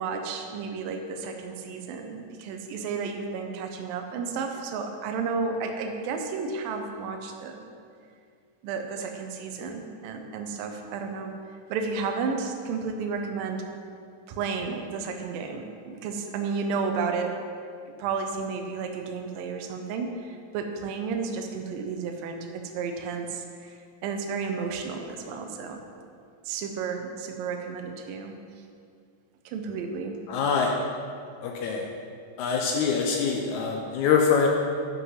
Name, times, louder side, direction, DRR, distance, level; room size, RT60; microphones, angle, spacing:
voice 1, 0.0-7.7 8.6-11.3 11.7-13.7 14.3-17.4 18.0-25.8 26.5-28.4 29.5-30.2, right 5 dB, 80° right, 4 dB, 2.4 m, -32 dB
voice 2, 30.3-30.7 31.4-31.9 32.4-34.5, left 6 dB, 80° left, 1 dB, 1.8 m, -24 dB
9.7 x 5.6 x 5.6 m, 2.3 s
omnidirectional pair, 4.1 m